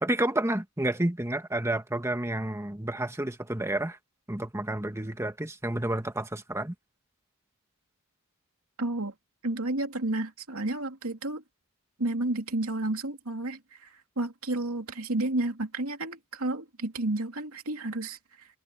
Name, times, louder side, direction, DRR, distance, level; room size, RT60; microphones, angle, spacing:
voice 1, 0.0-4.0 4.3-6.7, right 1 dB, 10° right, 1.5 m, -30 dB
voice 2, 8.8-9.1 9.4-11.4 12.0-13.9 14.2-18.2, right 2 dB, 70° right, 3.1 m, -31 dB
head